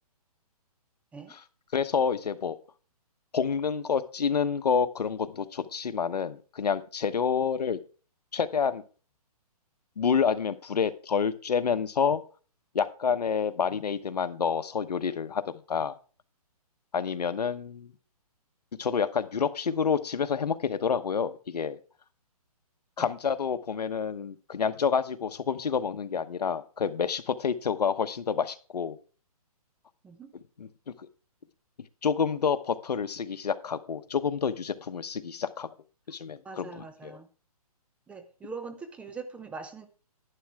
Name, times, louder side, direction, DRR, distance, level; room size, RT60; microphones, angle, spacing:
voice 1, 1.7-2.6 3.3-7.8 8.3-8.8 10.0-12.2 12.7-16.0 16.9-17.9 18.8-21.8 23.0-29.0 30.6-30.7 31.0-31.1 32.0-35.7 36.1-37.2, left 6 dB, 85° left, 13 dB, 1.0 m, -28 dB
voice 2, 36.4-37.3 38.1-39.9, right 4 dB, 5° right, 8 dB, 0.6 m, -42 dB
11.0 x 9.9 x 3.4 m, 0.38 s
hypercardioid pair, 150°, 20 cm